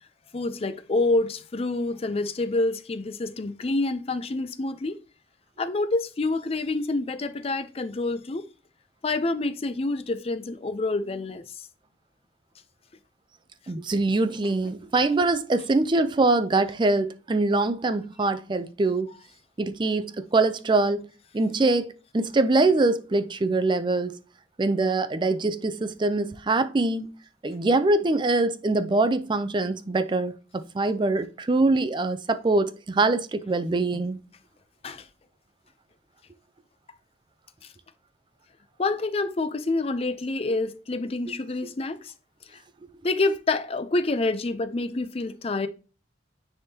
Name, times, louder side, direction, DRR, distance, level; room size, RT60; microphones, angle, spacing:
voice 1, 0.3-5.0 5.6-8.4 9.0-11.4 34.8-35.0 38.8-42.1 43.0-45.7, left 2 dB, 35° left, 0.5 m, -27 dB
voice 2, 13.7-19.1 19.6-21.1 21.3-24.2 24.6-27.1 27.4-34.2 41.3-41.4, right 2 dB, 25° right, 0.4 m, -24 dB
9.8 x 3.6 x 2.8 m
head